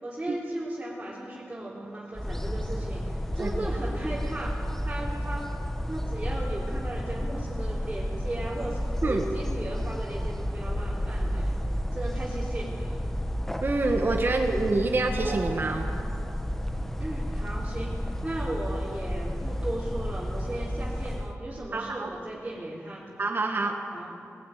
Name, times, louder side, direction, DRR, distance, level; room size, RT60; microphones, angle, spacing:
voice 1, 0.0-5.5 5.9-11.6 11.9-13.0 17.0-23.1 23.9-24.1, right 1 dB, 20° right, -7 dB, 3.8 m, -36 dB
sound 1, 2.1-21.3, equal, 5° left, 1.1 m, -31 dB
voice 2, 13.6-15.9 21.7-22.1 23.2-23.7, right 3 dB, 45° right, 2 dB, 1.8 m, -26 dB
sound 2, 15.2-16.8, right 5 dB, 80° right, 0.9 m, -42 dB
20.5 x 16.0 x 9.6 m, 2.5 s
wide cardioid pair, 100°, 5 cm